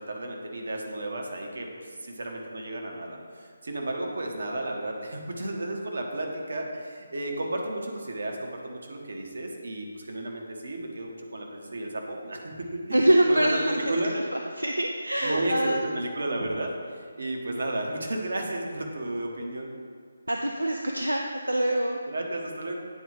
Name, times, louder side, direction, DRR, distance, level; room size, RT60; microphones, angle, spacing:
voice 1, 0.0-14.1 15.2-19.7 22.1-22.7, right 1 dB, 55° right, 1 dB, 1.0 m, -33 dB
voice 2, 12.9-15.8 20.3-22.0, right 1 dB, 80° right, 2 dB, 0.4 m, -25 dB
9.3 x 3.9 x 3.3 m, 2.1 s
figure-of-eight pair, 150°, 0 cm